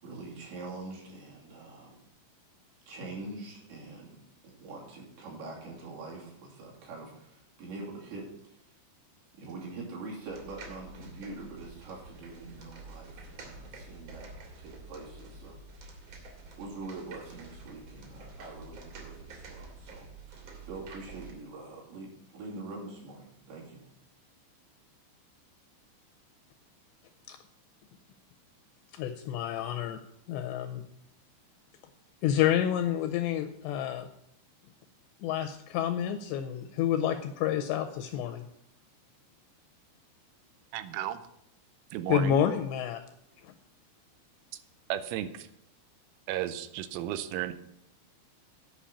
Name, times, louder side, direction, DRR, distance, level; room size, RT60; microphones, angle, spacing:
voice 1, 0.0-2.0 2.9-8.6 9.3-14.3 14.6-15.6 16.6-23.8, right 3 dB, 65° right, -3 dB, 5.0 m, -44 dB
sound 1, 10.3-21.3, right 3 dB, 45° right, 2.3 m, -48 dB
voice 2, 28.9-30.0 30.3-30.8 32.2-34.1 35.2-38.4 42.1-43.0 43.4-43.5, left 10 dB, 85° left, 7 dB, 2.5 m, -29 dB
voice 3, 40.7-41.2 41.9-42.4 44.9-45.5 46.3-47.5, right 12 dB, 85° right, 11 dB, 3.1 m, -33 dB
10.0 x 5.4 x 8.5 m, 0.75 s
omnidirectional pair, 5.5 m